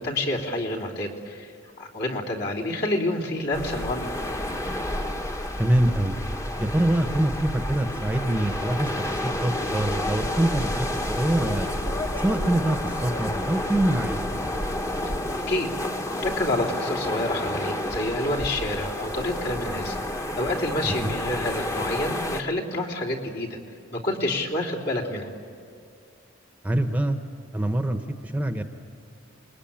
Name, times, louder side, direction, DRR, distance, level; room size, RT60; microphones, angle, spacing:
voice 1, 0.0-1.5 1.8-4.1 15.5-15.7 16.2-23.6 23.9-25.3, left 1 dB, 55° left, -2 dB, 3.3 m, -28 dB
sound 1, 3.5-22.4, left 1 dB, 15° left, 1.1 m, -30 dB
voice 2, 5.6-6.2 6.6-11.7 12.2-14.2 20.8-21.1 26.6-27.2 27.5-28.6, right 1 dB, 10° right, 6 dB, 1.0 m, -25 dB
28.5 x 21.5 x 8.9 m, 2.3 s
head